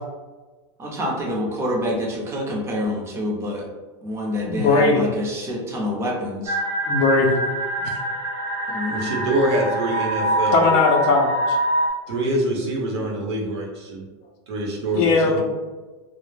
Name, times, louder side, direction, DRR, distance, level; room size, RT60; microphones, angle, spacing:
voice 1, 0.8-3.7 4.0-6.6 8.7-9.2, left 1 dB, 20° right, -1 dB, 0.5 m, -27 dB
voice 2, 4.5-5.0 6.9-7.4 7.8-7.9 10.5-11.6 15.0-15.4, left 3 dB, 50° left, 2 dB, 0.5 m, -19 dB
sound 1, 6.5-11.9, right 1 dB, 50° right, 0.8 m, -24 dB
voice 3, 8.9-10.8 12.1-14.0 14.5-15.4, right 1 dB, 85° right, -1 dB, 0.7 m, -25 dB
2.2 x 2.0 x 3.1 m, 1.3 s
supercardioid pair, 140°, 14 cm